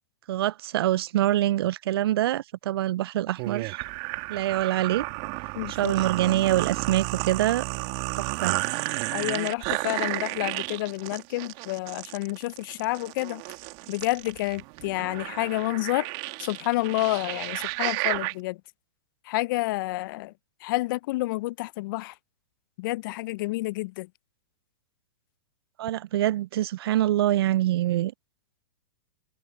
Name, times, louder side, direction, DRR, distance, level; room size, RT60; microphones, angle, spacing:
voice 1, 0.3-3.8 4.3-5.1 5.8-7.6 8.2-8.6 25.8-28.1, right 14 dB, 65° right, 0.5 m, -25 dB
sound 1, 3.4-18.3, right 28 dB, 45° right, 2.2 m, -32 dB
voice 2, 5.5-5.9 9.1-13.4 13.9-16.1 16.4-18.6 19.2-20.3 20.6-22.2 22.8-24.1, left 20 dB, 50° left, 0.6 m, -29 dB
hypercardioid pair, 115°, 14 cm